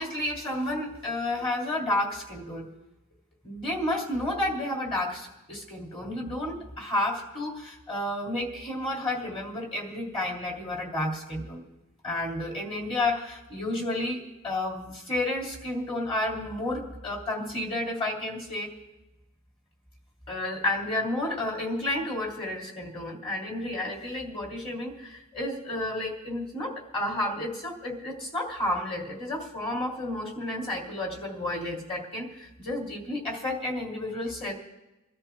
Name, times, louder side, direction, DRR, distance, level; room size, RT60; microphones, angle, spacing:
voice 1, 0.0-2.7 3.4-11.6 12.0-18.7 20.3-34.5, left 1 dB, 25° left, -1 dB, 3.0 m, -31 dB
28.5 x 13.0 x 2.4 m, 1.0 s
head